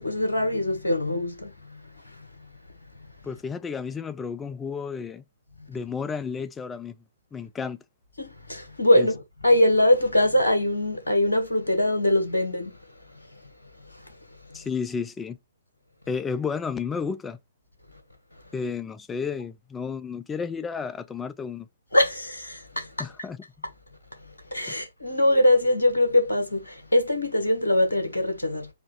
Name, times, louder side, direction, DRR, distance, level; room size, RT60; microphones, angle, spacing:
voice 1, 0.0-2.3 8.2-12.8 13.9-14.1 14.5-14.6 21.9-23.1 24.5-28.7, left 1 dB, 75° left, 1.4 m, -23 dB
voice 2, 3.2-5.2 5.7-7.0 7.3-7.8 9.0-9.1 14.5-15.4 16.1-17.4 18.5-21.7 23.0-23.4, left 5 dB, 10° left, 0.4 m, -32 dB
4.3 x 2.5 x 4.5 m
figure-of-eight pair, 120°, 0 cm